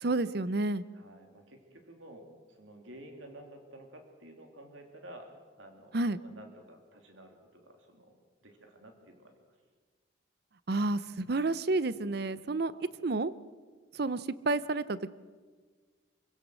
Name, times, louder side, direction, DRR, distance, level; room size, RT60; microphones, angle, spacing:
voice 1, 0.0-0.8 5.9-6.2 10.7-12.7 13.0-13.3 14.0-15.1, right 2 dB, 55° right, 16 dB, 0.6 m, -30 dB
voice 2, 0.9-5.3 5.6-8.1 8.4-9.3 12.7-12.9, right 1 dB, 80° right, 3 dB, 3.0 m, -52 dB
25.5 x 16.5 x 6.3 m, 1.5 s
head